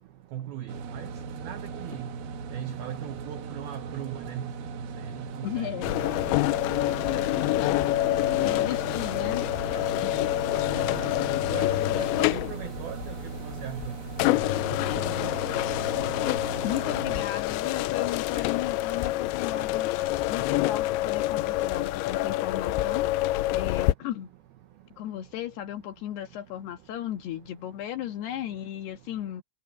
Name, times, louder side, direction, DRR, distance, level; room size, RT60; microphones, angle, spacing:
voice 1, 0.3-1.1 1.4-2.1 2.5-4.5 5.0-5.7 6.0-6.1 9.7-9.8 10.8-11.1 11.5-13.1 13.4-13.9 14.7-15.3, right 11 dB, 80° right, 2.2 m, -39 dB
sound 1, 0.7-17.3, right 5 dB, 60° right, 3.0 m, -38 dB
voice 2, 5.4-5.9 7.5-7.7 8.4-9.5 16.6-19.9 20.3-23.2 23.5-24.3 25.0-29.4, left 12 dB, 65° left, 3.1 m, -35 dB
sound 2, 5.8-23.9, left 17 dB, 85° left, 2.7 m, -27 dB
omnidirectional pair, 5.7 m